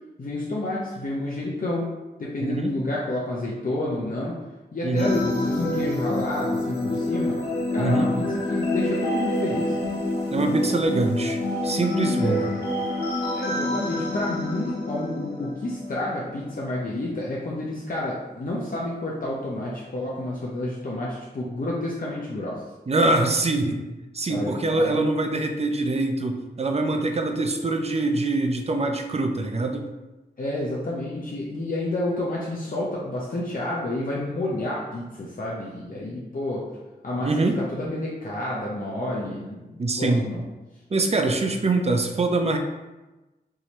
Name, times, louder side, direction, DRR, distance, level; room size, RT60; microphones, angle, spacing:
voice 1, 0.2-1.9 2.2-4.3 4.7-7.4 7.7-8.2 8.5-9.8 12.2-12.4 13.3-22.6 24.3-25.2 30.4-36.6 37.0-40.4, left 1 dB, 55° left, -5 dB, 0.7 m, -30 dB
voice 2, 2.4-2.7 4.8-5.2 7.8-8.1 10.3-12.5 22.9-23.8 24.1-29.9 37.2-37.6 39.8-40.3 40.9-42.6, right 2 dB, 40° right, 4 dB, 0.5 m, -24 dB
sound 1, 5.0-16.5, left 2 dB, 80° left, 1.0 m, -27 dB
4.7 x 2.7 x 3.0 m, 1.1 s
wide cardioid pair, 75°, 17 cm